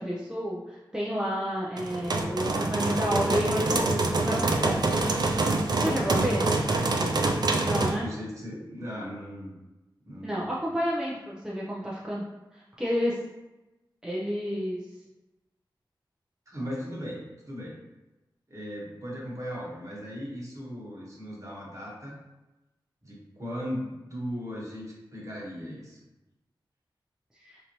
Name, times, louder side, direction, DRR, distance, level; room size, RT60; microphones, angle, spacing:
voice 1, 0.0-5.0 5.8-6.4 7.6-8.1 10.2-12.2 12.5-13.2 14.0-14.8 27.4-27.6, equal, 5° right, -7 dB, 0.7 m, -30 dB
sound 1, 1.8-8.0, right 2 dB, 55° right, 0.4 m, -26 dB
voice 2, 7.7-9.5 10.1-10.5 16.5-17.8 18.5-22.2 23.0-26.0, equal, 40° right, -5 dB, 1.3 m, -37 dB
3.9 x 2.8 x 3.0 m, 1.0 s
wide cardioid pair, 70°, 8 cm